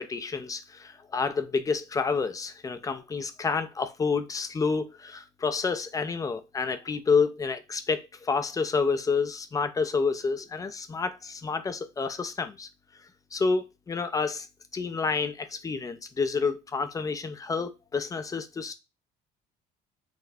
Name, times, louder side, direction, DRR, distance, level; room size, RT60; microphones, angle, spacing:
voice 1, 0.0-12.7 13.3-14.5 14.7-18.7, left 4 dB, 20° left, 0.4 m, -29 dB
4.0 x 2.1 x 2.6 m
cardioid pair, 110°, 17 cm